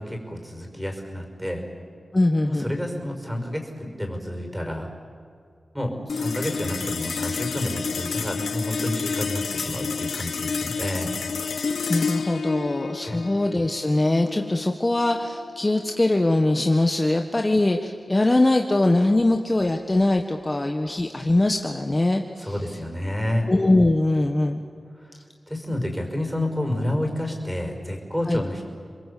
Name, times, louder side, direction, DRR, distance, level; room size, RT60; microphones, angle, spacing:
voice 1, 0.0-1.6 2.5-4.9 5.7-11.1 13.0-13.2 22.4-23.5 25.0-25.1 25.5-28.6, left 1 dB, 5° right, 3 dB, 5.9 m, -29 dB
voice 2, 2.1-2.7 11.9-22.5 23.5-24.6 28.3-28.4, left 2 dB, 25° left, 4 dB, 1.4 m, -22 dB
sound 1, 6.1-16.7, left 5 dB, 90° left, 1.0 m, -30 dB
30.0 x 21.5 x 8.5 m, 2.2 s
wide cardioid pair, 75°, 0 cm